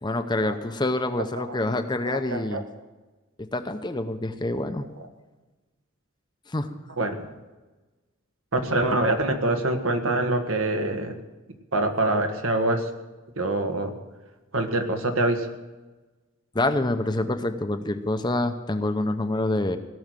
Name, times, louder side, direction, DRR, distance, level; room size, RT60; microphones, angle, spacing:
voice 1, 0.0-2.6 3.5-4.9 6.5-6.7 16.5-19.8, left 2 dB, 20° left, 8 dB, 0.7 m, -26 dB
voice 2, 2.0-2.6 7.0-7.3 8.5-11.2 11.7-12.9 13.4-13.9 14.5-15.5, right 2 dB, 75° right, 5 dB, 1.5 m, -25 dB
17.5 x 6.4 x 9.0 m, 1.2 s
head